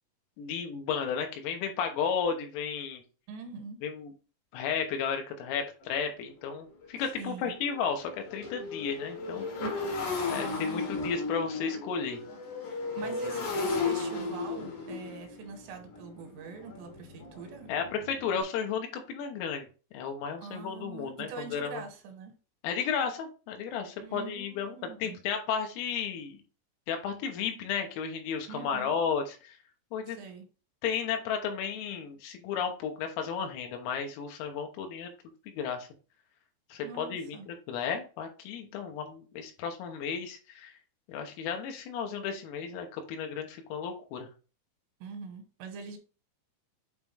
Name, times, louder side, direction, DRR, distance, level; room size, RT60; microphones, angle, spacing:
voice 1, 0.4-3.0 3.8-4.1 4.5-9.8 10.2-12.2 13.0-13.4 17.7-19.7 19.9-21.8 22.6-26.4 26.9-29.6 29.9-30.2 30.8-35.1 35.5-35.9 36.7-37.4 37.7-40.7 41.1-44.3, left 6 dB, 85° left, 3.8 m, -33 dB
voice 2, 3.3-3.8 7.2-7.5 10.3-10.9 13.0-17.7 20.4-22.3 24.0-25.2 28.5-28.9 30.1-30.5 36.8-37.5 45.0-46.0, right 5 dB, 80° right, 3.5 m, -43 dB
Motorcycle, 5.8-5.9 6.4-6.5 6.8-18.4, left 3 dB, 60° left, 2.1 m, -35 dB
8.7 x 3.6 x 3.2 m
omnidirectional pair, 5.9 m